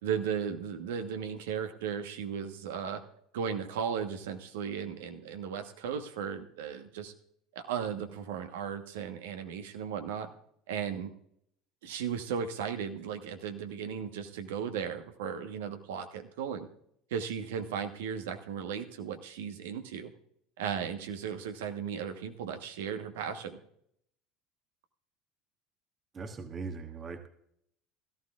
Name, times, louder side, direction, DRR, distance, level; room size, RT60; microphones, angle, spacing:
voice 1, 0.0-3.0 3.3-7.1 7.5-10.3 10.7-11.1 11.8-16.7 17.1-20.1 20.6-23.6, right 7 dB, 75° right, 7 dB, 1.2 m, -36 dB
voice 2, 26.1-27.3, right 4 dB, 35° right, 6 dB, 1.3 m, -40 dB
17.0 x 14.0 x 2.5 m, 0.70 s
hypercardioid pair, 70°, 0 cm